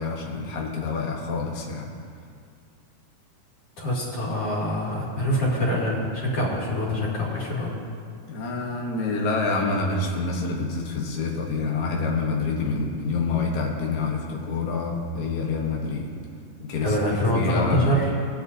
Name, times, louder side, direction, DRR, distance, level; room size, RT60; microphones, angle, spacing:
voice 1, 0.0-1.9 8.3-16.1 16.6-17.8, left 3 dB, 65° left, -2 dB, 0.9 m, -27 dB
voice 2, 3.8-7.7 16.8-18.1, equal, 50° left, -6 dB, 3.3 m, -25 dB
20.0 x 8.9 x 2.7 m, 2.3 s
omnidirectional pair, 3.7 m